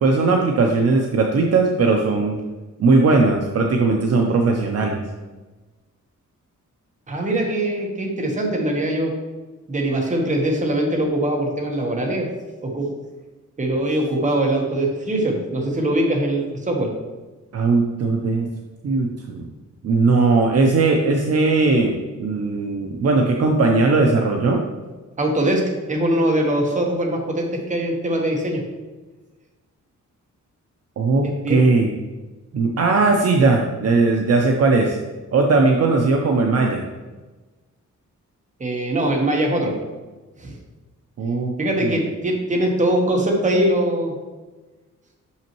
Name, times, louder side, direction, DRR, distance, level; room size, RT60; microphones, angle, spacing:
voice 1, 0.0-2.4 2.8-5.0 17.5-18.5 18.8-19.5 19.8-24.6 31.0-31.9 32.5-35.0 35.3-36.9 41.2-41.5 41.8-42.0, right 3 dB, 50° right, 1 dB, 0.6 m, -18 dB
voice 2, 7.1-9.1 9.7-12.3 12.6-12.9 13.6-16.9 25.2-25.6 25.9-28.6 31.2-31.7 38.6-39.7 40.4-40.5 41.6-44.1, right 1 dB, 25° right, 0 dB, 1.0 m, -22 dB
6.1 x 5.6 x 3.0 m, 1.2 s
wide cardioid pair, 170°, 31 cm